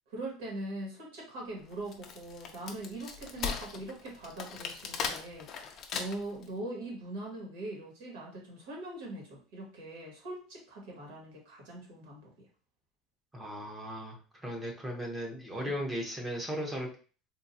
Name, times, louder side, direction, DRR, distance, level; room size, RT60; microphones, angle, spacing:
voice 1, 0.1-12.3 15.7-15.8, right 2 dB, 85° right, -1 dB, 1.8 m, -42 dB
Wood, 1.7-6.4, left 6 dB, 30° left, 0.4 m, -38 dB
voice 2, 13.3-16.9, equal, 10° right, 0 dB, 0.7 m, -37 dB
3.7 x 2.5 x 2.7 m, 0.37 s
cardioid pair, 170°, 0 cm